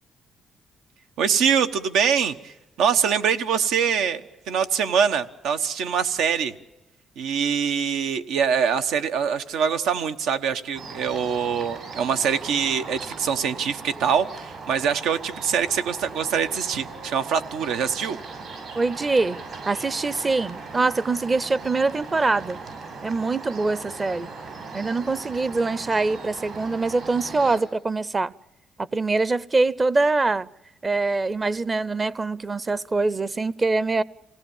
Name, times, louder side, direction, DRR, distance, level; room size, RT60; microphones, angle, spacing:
voice 1, 1.2-2.5 2.8-6.5 7.2-18.2, right 7 dB, 85° right, 1.1 m, -24 dB
sound 1, 10.7-27.6, right 4 dB, 65° right, 7.7 m, -39 dB
voice 2, 18.7-19.4 19.7-22.6 23.0-24.3 24.7-28.3 28.9-30.5 30.8-34.0, right 3 dB, 30° right, 0.7 m, -24 dB
27.0 x 17.5 x 7.2 m
cardioid pair, 90°, 0 cm